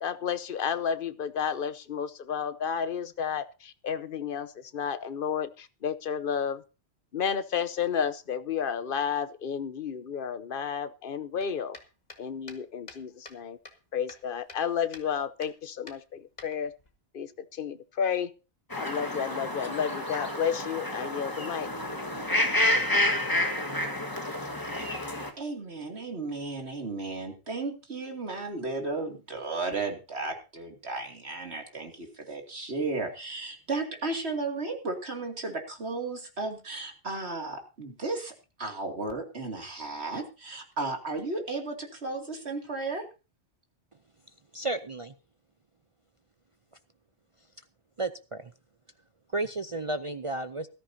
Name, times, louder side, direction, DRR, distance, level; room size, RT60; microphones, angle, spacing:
voice 1, 0.0-6.6 7.1-11.8 12.2-13.6 13.9-16.7 17.1-18.3 18.7-21.7, left 7 dB, 55° left, 13 dB, 1.0 m, -31 dB
sound 1, 11.4-13.4 13.6-14.7 14.9-15.1 15.4-15.6 15.9-16.9, left 2 dB, 40° left, 2.0 m, -48 dB
sound 2, 18.7-25.3, left 1 dB, 20° left, 1.6 m, -29 dB
voice 2, 25.4-43.0, right 3 dB, 70° right, 4 dB, 2.9 m, -34 dB
voice 3, 44.5-45.1 48.0-48.5 49.3-50.7, right 2 dB, 35° right, 11 dB, 0.6 m, -32 dB
19.5 x 13.5 x 2.8 m, 0.31 s
omnidirectional pair, 1.2 m